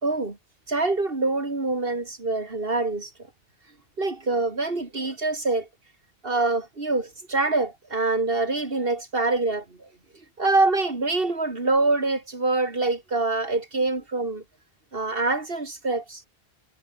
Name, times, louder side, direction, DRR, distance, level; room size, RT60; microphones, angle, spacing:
voice 1, 0.0-0.4 0.7-3.1 4.0-5.7 6.2-9.9 10.4-14.4 14.9-16.2, right 3 dB, 65° right, 3.1 m, -25 dB
omnidirectional pair, 1.0 m